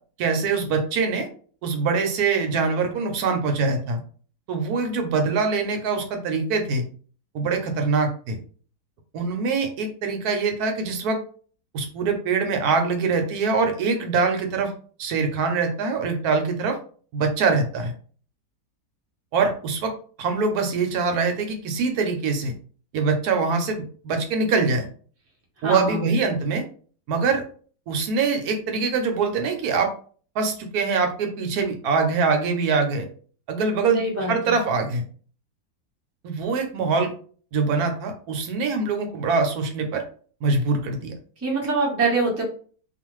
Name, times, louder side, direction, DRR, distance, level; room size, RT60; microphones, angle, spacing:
voice 1, 0.2-1.3 1.6-4.0 4.5-6.8 7.3-8.4 9.1-11.2 11.7-14.7 15.0-16.8 17.1-17.9 19.3-19.9 20.2-22.5 22.9-24.9 25.6-26.6 27.1-27.4 27.9-29.9 30.4-33.1 33.5-35.0 36.2-37.1 37.5-40.0 40.4-41.1, right 4 dB, 75° right, 5 dB, 1.1 m, -23 dB
voice 2, 25.6-26.0 33.9-34.5 41.4-42.4, right 3 dB, 15° right, -3 dB, 0.5 m, -24 dB
2.5 x 2.4 x 3.0 m, 0.43 s
omnidirectional pair, 1.7 m